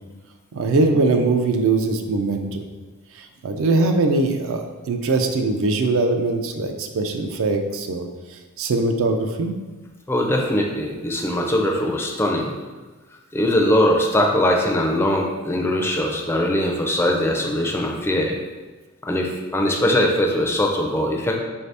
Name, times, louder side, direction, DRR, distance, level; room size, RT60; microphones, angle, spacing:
voice 1, 0.5-2.6 3.2-4.6 4.9-8.1 8.6-9.5, right 3 dB, 65° right, 5 dB, 0.4 m, -21 dB
voice 2, 10.1-12.5 13.3-18.4 19.0-21.4, left 1 dB, 10° left, 0 dB, 0.4 m, -21 dB
4.1 x 2.7 x 3.3 m, 1.3 s
head